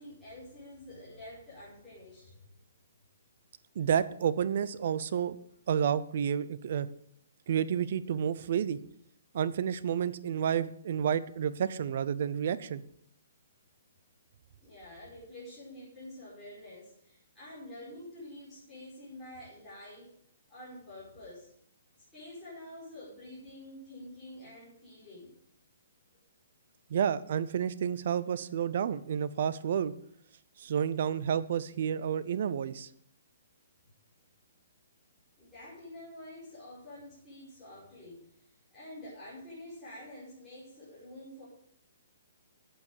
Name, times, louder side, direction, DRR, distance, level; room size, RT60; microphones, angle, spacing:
voice 1, 0.0-2.4 14.6-20.1 20.5-21.5 22.1-25.3 35.4-38.2 38.7-41.4, left 1 dB, ahead, -14 dB, 5.2 m, -48 dB
voice 2, 3.8-5.4 5.7-6.9 7.5-8.8 9.3-12.8 26.9-29.9 30.6-32.9, right 8 dB, 40° right, 16 dB, 0.6 m, -30 dB
8.8 x 8.6 x 6.5 m, 0.70 s
hypercardioid pair, 180°, 0 cm